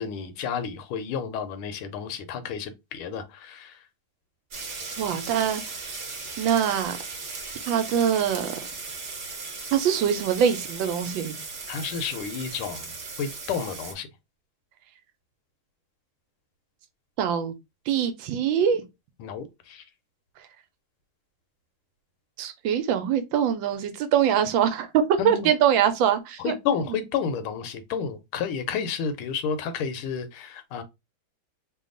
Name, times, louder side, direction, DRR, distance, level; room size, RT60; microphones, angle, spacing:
voice 1, 0.0-3.7 11.7-12.8 13.2-14.1 19.2-19.4 19.7-19.8 25.2-25.5 26.4-30.8, left 6 dB, 85° left, 1.6 m, -31 dB
sound 1, 4.5-13.9, right 4 dB, 50° right, 0.8 m, -37 dB
voice 2, 5.0-5.6 6.4-7.0 7.7-8.5 9.7-11.4 17.2-17.5 17.9-18.8 22.4-26.5 26.9-27.0, right 8 dB, 75° right, 1.2 m, -23 dB
3.4 x 2.3 x 3.7 m
omnidirectional pair, 2.3 m